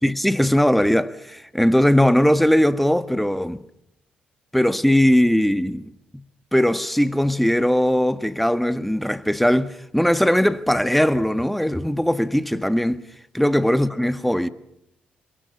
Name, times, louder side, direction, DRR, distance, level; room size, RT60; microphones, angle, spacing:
voice 1, 0.0-3.6 4.5-5.9 6.5-13.1 13.3-14.5, equal, ahead, 1.4 m, -19 dB
28.0 x 22.5 x 5.5 m
cardioid pair, 75°, 4 cm